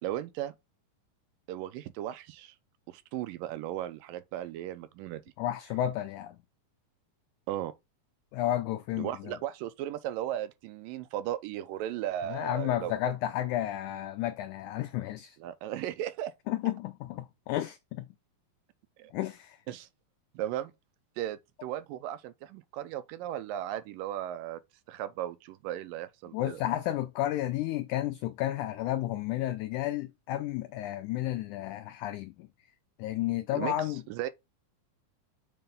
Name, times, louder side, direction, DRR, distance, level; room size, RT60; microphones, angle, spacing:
voice 1, 0.0-0.5 1.5-2.6 2.9-5.2 7.5-7.7 9.0-12.9 15.4-16.3 19.0-19.1 19.7-19.9 20.3-20.7 21.2-24.6 24.9-26.6 33.6-33.8 34.1-34.3, right 12 dB, 80° right, 2.2 m, -36 dB
voice 2, 5.4-6.4 8.3-9.4 12.2-15.4 16.5-18.1 19.1-19.6 26.3-32.5 33.0-34.0, left 13 dB, 85° left, 1.7 m, -32 dB
6.8 x 3.3 x 5.3 m
omnidirectional pair, 4.1 m